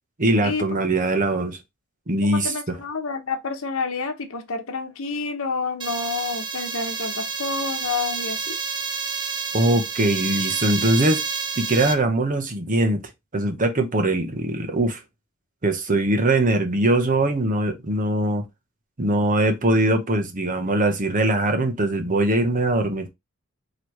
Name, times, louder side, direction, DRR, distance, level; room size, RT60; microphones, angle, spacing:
voice 1, 0.2-1.6 2.1-2.8 9.5-11.2 11.6-13.0 13.3-15.0 15.6-18.4 19.0-23.1, right 1 dB, 40° right, 1.0 m, -21 dB
voice 2, 2.2-8.6, left 4 dB, 90° left, 0.9 m, -29 dB
sound 1, 5.8-11.9, right 5 dB, 25° right, 0.6 m, -29 dB
4.4 x 3.2 x 3.1 m
head